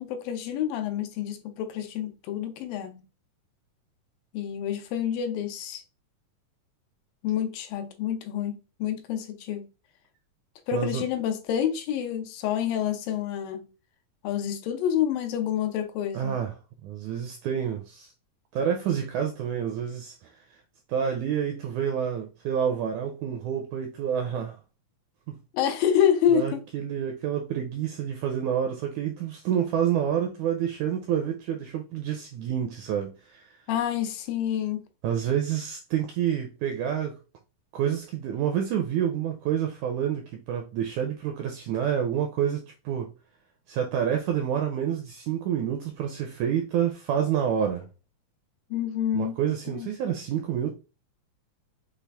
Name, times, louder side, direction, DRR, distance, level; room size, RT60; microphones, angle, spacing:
voice 1, 0.0-3.0 4.3-5.8 7.2-9.7 10.7-13.6 14.2-16.3 25.5-26.6 33.7-34.9 48.7-49.3 49.7-49.9, left 9 dB, 80° left, 2.4 m, -28 dB
voice 2, 10.7-11.0 16.1-18.1 18.5-20.6 20.9-24.6 25.3-25.4 26.3-33.6 35.0-37.2 37.7-43.1 43.7-47.9 49.1-50.7, right 9 dB, 85° right, 1.7 m, -28 dB
6.1 x 2.3 x 3.4 m
omnidirectional pair, 4.0 m